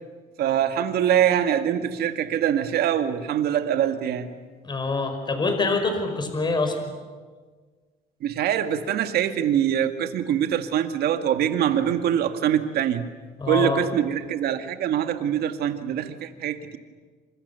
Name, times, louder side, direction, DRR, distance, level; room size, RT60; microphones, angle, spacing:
voice 1, 0.4-4.3 8.2-13.1 13.5-16.8, right 10 dB, 70° right, 7 dB, 2.1 m, -24 dB
voice 2, 4.6-6.8 13.4-13.8, left 3 dB, 25° left, 6 dB, 5.2 m, -25 dB
28.5 x 27.0 x 7.0 m, 1.5 s
cardioid pair, 110°, 17 cm